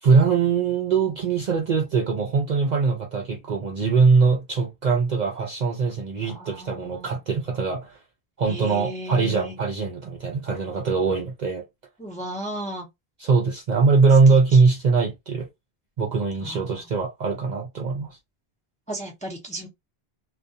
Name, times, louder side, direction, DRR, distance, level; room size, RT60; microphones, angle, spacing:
voice 1, 0.0-8.0 8.4-11.6 13.2-15.5 16.0-18.2, right 4 dB, 55° right, 0.6 m, -21 dB
voice 2, 6.2-7.2 8.4-9.6 12.0-12.9 14.5-14.6 16.4-16.9 18.9-19.7, right 1 dB, 10° left, 0.5 m, -35 dB
2.3 x 2.3 x 2.6 m
omnidirectional pair, 1.1 m